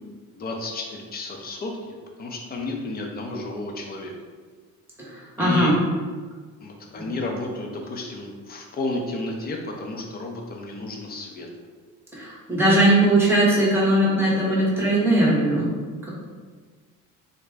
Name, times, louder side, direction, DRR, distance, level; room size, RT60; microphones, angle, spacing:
voice 1, 0.3-4.1 5.4-5.8 6.6-11.5, left 2 dB, 30° left, 1 dB, 0.5 m, -32 dB
voice 2, 5.0-5.8 12.1-15.7, right 1 dB, 5° right, -6 dB, 0.9 m, -19 dB
3.8 x 2.1 x 3.4 m, 1.5 s
cardioid pair, 135°, 33 cm